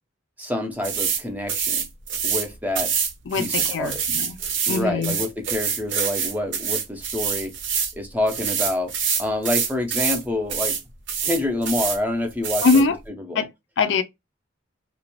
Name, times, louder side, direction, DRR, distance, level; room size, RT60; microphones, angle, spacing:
voice 1, 0.4-1.8 2.2-2.9 3.3-4.0 4.7-7.5 7.9-8.9 9.2-10.8 11.2-12.9 13.3-13.4, left 1 dB, 10° right, 0.5 m, -27 dB
sound 1, 0.8-1.2 1.5-2.5 2.7-7.9 8.3-10.2 10.5-10.8 11.1-12.0 12.4-12.8, right 7 dB, 60° right, 0.7 m, -25 dB
voice 2, 3.3-4.4 4.7-5.2 12.6-13.0 13.3-13.5 13.8-14.0, left 4 dB, 65° left, 0.4 m, -22 dB
2.4 x 2.1 x 3.0 m
head